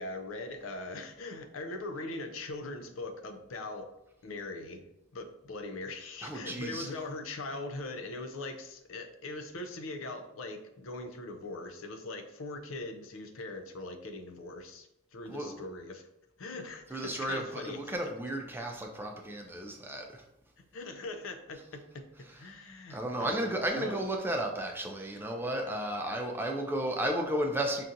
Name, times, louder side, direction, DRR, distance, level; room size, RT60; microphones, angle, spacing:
voice 1, 0.0-3.9 4.2-4.8 5.1-16.1 16.4-18.0 20.6-22.1 22.3-24.0, left 2 dB, 80° left, 7 dB, 0.5 m, -41 dB
voice 2, 6.2-6.9 15.3-15.6 16.9-20.2 22.9-27.8, right 1 dB, 10° right, 2 dB, 0.4 m, -33 dB
5.6 x 2.4 x 2.6 m, 0.87 s
head